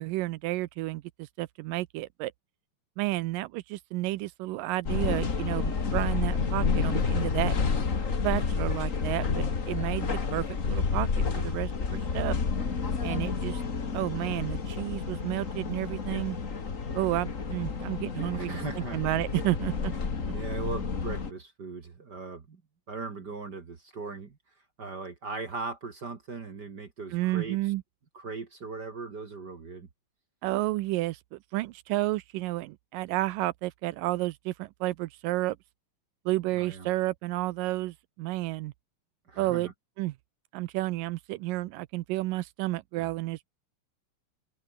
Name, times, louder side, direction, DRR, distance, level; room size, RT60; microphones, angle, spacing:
voice 1, 0.0-2.3 3.0-7.6 8.2-12.4 13.0-13.6 13.9-16.4 16.9-19.9 27.1-27.8 30.4-35.6 36.3-38.7 39.4-39.7 40.0-40.1 40.5-43.5, right 18 dB, 85° right, 2.3 m, -31 dB
sound 1, 4.8-21.3, left 5 dB, 30° left, 1.6 m, -30 dB
voice 2, 18.3-19.1 20.3-22.6 22.9-24.4 24.8-27.7 28.1-29.9 36.6-36.9 39.3-39.7 43.0-43.1, right 4 dB, 35° right, 1.9 m, -39 dB
open air
omnidirectional pair, 4.0 m